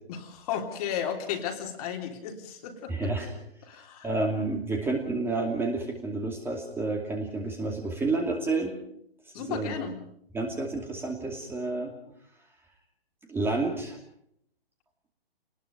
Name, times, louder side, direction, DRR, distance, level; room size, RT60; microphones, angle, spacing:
voice 1, 0.1-3.3 3.6-4.2 9.3-10.0, left 8 dB, 35° left, 4 dB, 3.4 m, -34 dB
voice 2, 2.9-3.3 4.0-8.8 9.4-9.7 10.3-11.9 13.3-14.0, right 3 dB, 5° right, 2 dB, 2.6 m, -30 dB
27.0 x 20.0 x 5.1 m, 0.71 s
hypercardioid pair, 135°, 31 cm